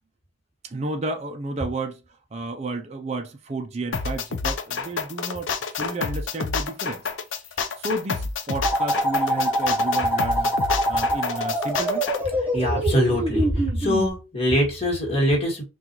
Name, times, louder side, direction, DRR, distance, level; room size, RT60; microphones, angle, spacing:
voice 1, 0.6-2.0 2.3-7.0 7.5-10.5 10.9-12.1, right 2 dB, 35° right, 0.5 m, -32 dB
sound 1, 3.9-12.2, left 5 dB, 75° left, 0.6 m, -28 dB
sound 2, 8.6-14.1, equal, 10° right, 0.8 m, -24 dB
voice 2, 12.5-15.6, equal, 30° left, 1.6 m, -23 dB
5.9 x 2.4 x 3.0 m
head